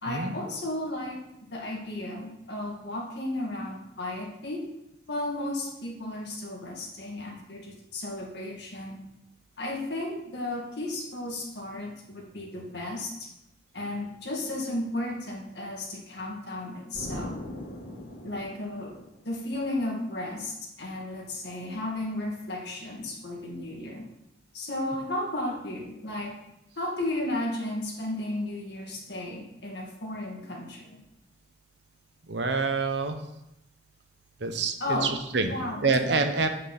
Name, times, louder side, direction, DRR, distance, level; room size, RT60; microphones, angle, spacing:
voice 1, 0.0-1.2 1.5-4.6 5.1-9.0 9.6-13.3 13.7-17.4 18.2-18.9 19.2-24.1 24.5-26.4 26.8-31.0 34.8-35.2 35.5-36.3, left 1 dB, 60° left, -1 dB, 2.2 m, -34 dB
Explosion, 16.9-19.6, left 1 dB, 90° left, 2.0 m, -40 dB
voice 2, 32.3-33.2 34.4-35.5 35.8-36.5, right 4 dB, 60° right, 7 dB, 0.9 m, -26 dB
9.1 x 5.6 x 5.9 m, 0.86 s
head